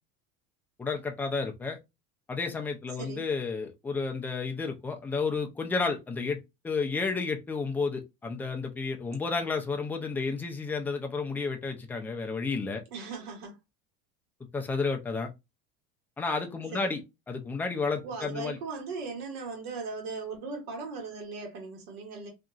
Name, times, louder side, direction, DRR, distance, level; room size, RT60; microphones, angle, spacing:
voice 1, 0.8-1.8 2.3-6.4 6.6-12.8 14.5-15.3 16.2-17.0 17.3-18.6, left 4 dB, 5° left, 0.3 m, -31 dB
voice 2, 12.9-13.6 16.7-17.0 18.0-22.3, right 4 dB, 85° right, 1.4 m, -38 dB
2.8 x 2.5 x 2.3 m
cardioid pair, 150°, 29 cm